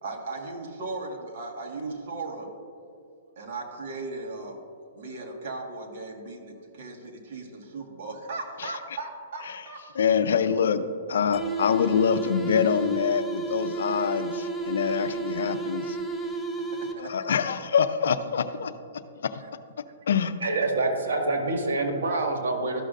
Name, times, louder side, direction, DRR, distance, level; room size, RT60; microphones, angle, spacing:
voice 1, 0.0-2.5 3.4-4.6 4.9-9.8 16.7-17.2, right 3 dB, 55° right, 1 dB, 1.5 m, -37 dB
voice 2, 9.9-16.0 17.0-19.4 20.1-20.3, left 7 dB, 75° left, 11 dB, 0.5 m, -25 dB
sound 1, 11.3-17.3, right 3 dB, 5° left, 0.6 m, -32 dB
voice 3, 20.4-22.8, right 2 dB, 85° right, 2 dB, 1.8 m, -26 dB
13.0 x 6.4 x 2.5 m, 2.3 s
hypercardioid pair, 145°, 0 cm